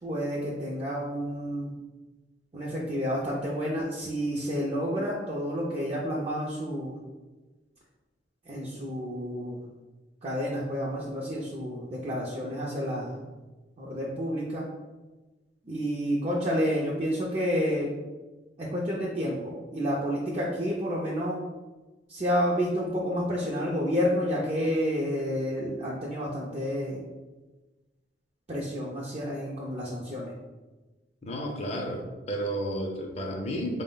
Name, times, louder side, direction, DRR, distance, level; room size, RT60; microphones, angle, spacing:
voice 1, 0.0-1.8 2.5-6.9 8.5-9.6 10.2-13.2 13.8-14.7 15.7-17.9 18.6-21.5 22.1-27.0 28.5-30.3, equal, 35° right, -5 dB, 0.5 m, -30 dB
voice 2, 31.2-33.8, equal, 35° left, 2 dB, 0.5 m, -32 dB
4.2 x 2.1 x 3.8 m, 1.2 s
head